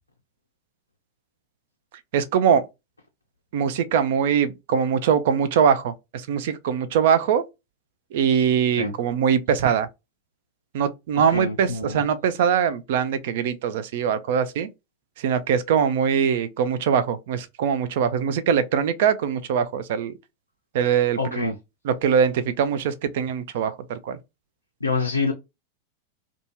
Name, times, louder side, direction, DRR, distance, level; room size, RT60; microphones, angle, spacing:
voice 1, 2.1-2.7 3.5-7.4 8.1-9.9 10.7-14.7 15.2-20.1 20.7-21.4 21.9-24.2, right 7 dB, 55° right, 0.4 m, -22 dB
voice 2, 11.1-12.0 21.2-21.5 24.8-25.3, left 3 dB, 80° left, 0.4 m, -26 dB
2.6 x 2.3 x 2.8 m
figure-of-eight pair, 90°, 0 cm